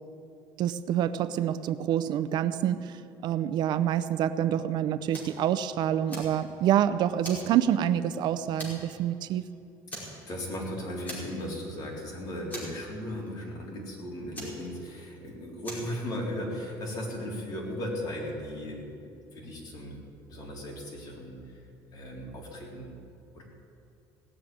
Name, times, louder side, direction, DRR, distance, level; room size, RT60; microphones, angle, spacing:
voice 1, 0.6-2.9 3.2-9.4, right 10 dB, 60° right, 12 dB, 0.6 m, -27 dB
Fire, 5.1-5.4 5.8-6.8 7.2-8.2 8.6-9.0 9.3-9.4 9.9-10.6 11.1-11.6 11.9-12.0 12.5-13.3 14.3-15.2 15.6-16.0, equal, 20° left, 4.9 m, -41 dB
voice 2, 9.9-20.0 20.3-21.4 21.9-22.9 23.3-23.4, left 1 dB, 50° left, -2 dB, 3.9 m, -37 dB
17.5 x 7.4 x 9.4 m, 2.6 s
cardioid pair, 135°, 9 cm